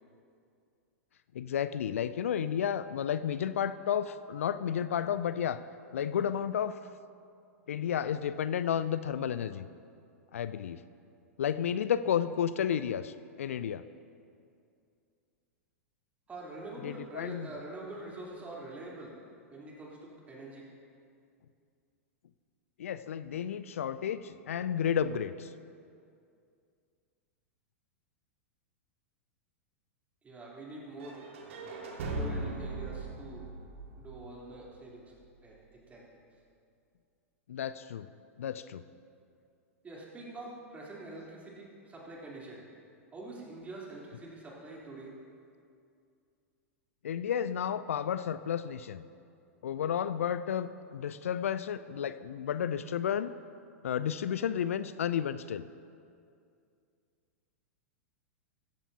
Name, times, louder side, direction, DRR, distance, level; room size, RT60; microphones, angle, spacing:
voice 1, 1.3-5.6 5.9-6.8 7.7-9.7 10.3-10.8 11.4-13.8 16.8-17.5 22.8-25.5 37.5-38.1 38.4-38.8 47.0-49.0 49.6-53.3 53.8-55.7, left 9 dB, 70° left, 14 dB, 0.4 m, -32 dB
voice 2, 16.3-19.2 19.5-20.7 30.2-31.2 32.1-33.5 34.0-35.1 35.4-36.0 39.8-42.6 43.1-45.1, right 2 dB, 20° right, -4 dB, 3.5 m, -45 dB
sound 1, 31.0-34.9, right 2 dB, 65° right, 2.0 m, -39 dB
16.0 x 13.5 x 2.8 m, 2.4 s
figure-of-eight pair, 100°, 8 cm